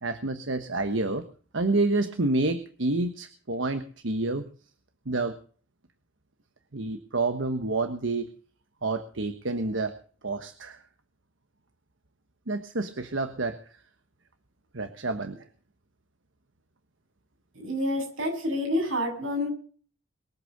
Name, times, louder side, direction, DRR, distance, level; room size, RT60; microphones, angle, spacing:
voice 1, 0.0-1.3 1.5-4.5 5.0-5.4 6.7-8.3 8.8-9.9 10.2-10.8 12.5-13.6 14.7-15.5, right 2 dB, 70° right, 9 dB, 1.3 m, -28 dB
voice 2, 17.5-19.5, left 1 dB, 90° right, 2 dB, 8.0 m, -28 dB
22.5 x 8.4 x 6.6 m, 0.43 s
head